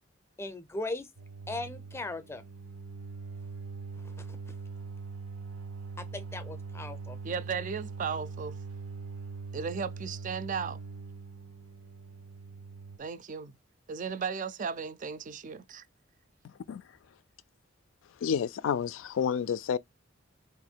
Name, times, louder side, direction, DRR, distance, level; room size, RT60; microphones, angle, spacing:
voice 1, 0.4-1.1 1.5-2.4 6.0-7.2, left 2 dB, 15° left, 0.5 m, -38 dB
sound 1, 1.2-13.0, right 4 dB, 85° right, 0.6 m, -42 dB
voice 2, 7.2-8.6 9.5-10.8 13.0-13.5 13.9-15.8, right 6 dB, 40° right, 0.4 m, -35 dB
voice 3, 18.2-19.8, left 7 dB, 75° left, 0.3 m, -29 dB
3.0 x 2.6 x 4.4 m
head